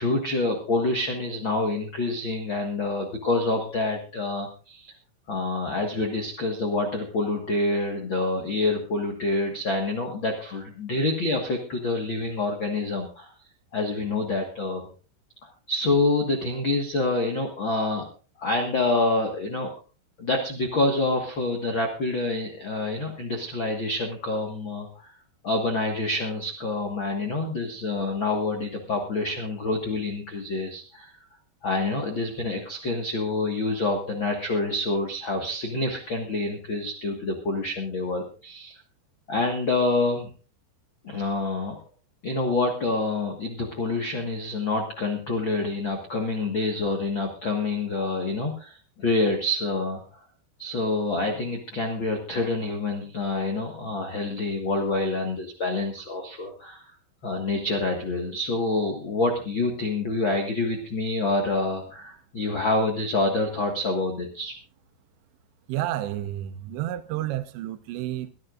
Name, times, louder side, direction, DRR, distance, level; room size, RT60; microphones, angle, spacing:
voice 1, 0.0-4.9 5.3-13.3 13.7-14.9 15.4-18.0 18.4-19.7 20.2-25.1 25.4-31.1 31.6-38.7 39.3-40.3 41.0-41.8 42.2-50.0 50.6-56.8 57.2-64.5, left 2 dB, 90° left, 1.0 m, -27 dB
voice 2, 65.7-68.3, right 13 dB, 80° right, 3.0 m, -30 dB
22.5 x 12.0 x 2.5 m
omnidirectional pair, 5.1 m